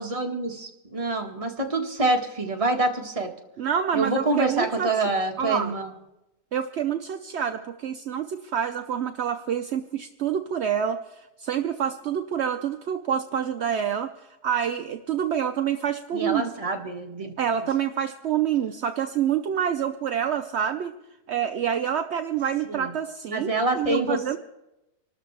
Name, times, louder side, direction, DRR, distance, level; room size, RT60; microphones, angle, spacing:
voice 1, 0.0-3.3 3.9-5.9 16.1-17.4 22.7-22.9 23.3-24.4, right 2 dB, 20° right, 2 dB, 1.5 m, -26 dB
voice 2, 3.6-4.9 5.4-5.7 6.5-11.0 11.4-14.1 14.4-16.5 17.4-20.9 21.3-24.4, right 8 dB, 60° right, 7 dB, 0.7 m, -27 dB
25.5 x 13.0 x 3.3 m, 0.91 s
omnidirectional pair, 1.7 m